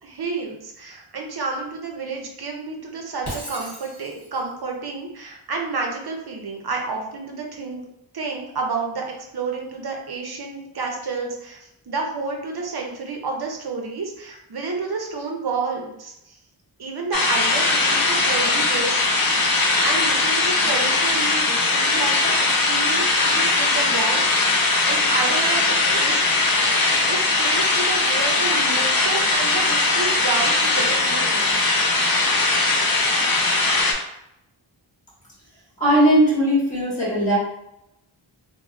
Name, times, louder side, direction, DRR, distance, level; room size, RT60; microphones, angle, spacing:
voice 1, 0.0-7.9 8.1-16.4 16.8-19.0 19.4-26.2 26.7-31.6, right 4 dB, 50° right, 1 dB, 0.6 m, -30 dB
Shatter, 3.2-4.5, equal, 35° left, 1.5 m, -36 dB
sound 1, 17.1-33.9, left 3 dB, 50° left, 0.5 m, -20 dB
voice 2, 35.8-37.4, equal, 15° left, -7 dB, 1.5 m, -18 dB
3.0 x 2.1 x 2.5 m, 0.83 s
wide cardioid pair, 70°, 48 cm